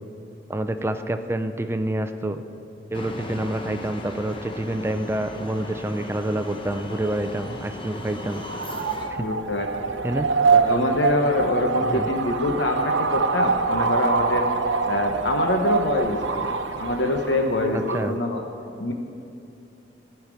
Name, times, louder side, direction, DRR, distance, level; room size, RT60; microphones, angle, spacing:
voice 1, 0.5-2.4 2.9-8.4 9.2-9.3 10.0-10.3 11.9-12.1 17.9-18.2, right 1 dB, 15° right, 8 dB, 0.5 m, -27 dB
sound 1, 2.9-9.1, left 1 dB, 30° left, 0.9 m, -37 dB
sound 2, 8.4-18.1, right 4 dB, 85° right, 0.8 m, -24 dB
voice 2, 9.2-9.9 10.5-14.5 14.8-16.5 16.8-18.4 18.8-18.9, left 2 dB, 70° left, 3 dB, 1.0 m, -25 dB
17.0 x 5.8 x 9.2 m, 2.8 s
head